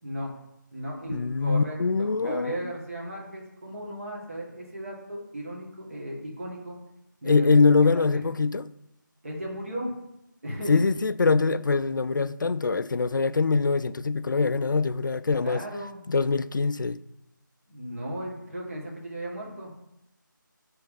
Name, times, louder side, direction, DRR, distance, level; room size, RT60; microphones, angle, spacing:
voice 1, 0.0-0.3 0.7-6.8 7.2-8.2 9.2-9.9 10.4-10.8 15.4-16.1 17.7-19.7, equal, 40° right, 2.0 m, -35 dB
voice 2, 1.1-2.6 7.2-8.6 10.7-15.6 16.1-17.0, left 4 dB, 70° left, 0.4 m, -23 dB
7.0 x 3.4 x 5.6 m
figure-of-eight pair, 170°, 11 cm